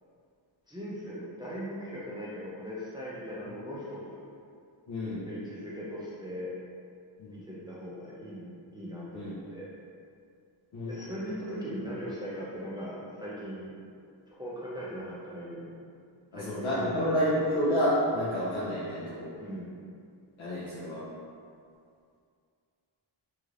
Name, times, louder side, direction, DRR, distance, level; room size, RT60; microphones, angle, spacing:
voice 1, 0.7-4.2 5.3-6.5 7.3-9.7 10.9-13.7 14.3-15.7 16.3-17.1 19.4-19.8, equal, 10° right, -8 dB, 0.5 m, -39 dB
voice 2, 4.9-5.2 7.2-7.4 9.1-9.3 10.7-10.9 16.3-19.3 20.4-21.0, equal, 75° left, -10 dB, 0.8 m, -29 dB
3.1 x 2.8 x 2.4 m, 2.3 s
wide cardioid pair, 90°, 48 cm